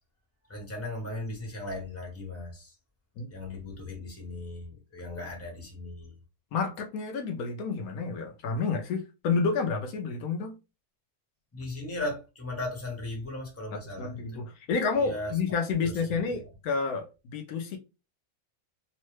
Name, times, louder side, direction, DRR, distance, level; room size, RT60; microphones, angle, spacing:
voice 1, 0.5-2.7 3.3-6.1 11.5-14.2 15.0-15.3 15.8-15.9, left 2 dB, 10° left, 0.9 m, -37 dB
voice 2, 6.5-10.6 13.7-17.8, left 4 dB, 80° left, 1.1 m, -30 dB
3.1 x 2.1 x 3.0 m
omnidirectional pair, 1.6 m